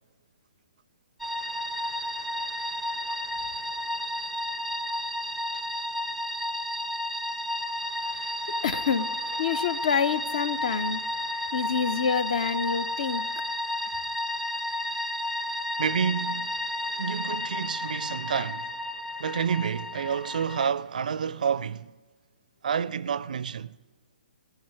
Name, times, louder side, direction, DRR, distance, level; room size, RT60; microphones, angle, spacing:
sound 1, 1.2-20.7, left 1 dB, ahead, 0.5 m, -32 dB
voice 1, 8.6-9.1 9.4-11.0 11.5-13.2, left 6 dB, 55° left, 0.7 m, -27 dB
voice 2, 15.8-16.5 17.0-18.7 19.2-21.9 22.6-23.8, right 7 dB, 65° right, 0.4 m, -29 dB
18.5 x 7.2 x 6.4 m
figure-of-eight pair, 130°, 5 cm